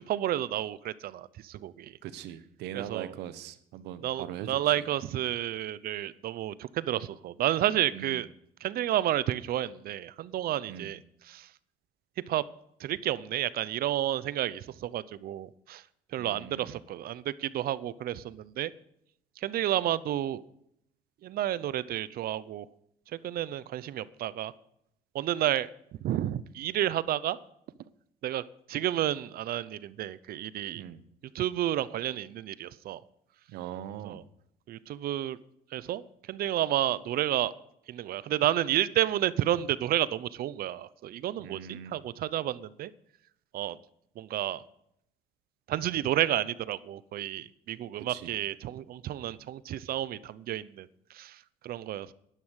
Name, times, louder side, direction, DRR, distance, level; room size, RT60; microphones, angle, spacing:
voice 1, 0.0-2.0 2.7-3.1 4.0-8.3 8.6-11.5 12.3-12.4 12.8-15.8 16.1-18.7 19.4-20.4 21.2-22.7 23.1-24.5 25.1-25.7 26.0-27.4 28.2-28.4 28.7-30.8 31.3-33.0 34.0-34.2 34.7-35.4 35.7-37.5 37.9-42.9 43.5-43.8 44.2-44.6 45.7-52.1, right 12 dB, 60° right, 18 dB, 0.7 m, -31 dB
voice 2, 2.0-4.8 7.9-8.2 10.7-10.9 16.2-16.8 30.7-31.0 33.5-34.2 41.4-42.0 48.1-48.3, right 10 dB, 85° right, 13 dB, 1.1 m, -41 dB
11.5 x 11.0 x 6.4 m, 0.74 s
cardioid pair, 110°, 17 cm